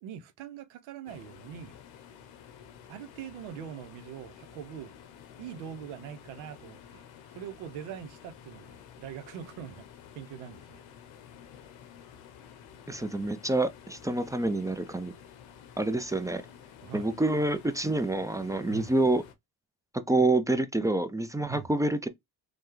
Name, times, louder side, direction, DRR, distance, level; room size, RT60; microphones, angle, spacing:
voice 1, 0.0-1.8 2.9-4.9 5.4-7.0 7.3-9.9 10.2-10.8 16.8-17.1 18.7-18.9 21.5-21.7, right 8 dB, 85° right, 0.7 m, -42 dB
sound 1, 1.1-19.3, left 8 dB, 80° left, 0.8 m, -51 dB
voice 2, 12.9-15.1 15.8-16.4 16.9-19.2 20.1-22.1, right 2 dB, 10° right, 0.4 m, -27 dB
3.3 x 2.2 x 3.0 m
supercardioid pair, 60°, 46 cm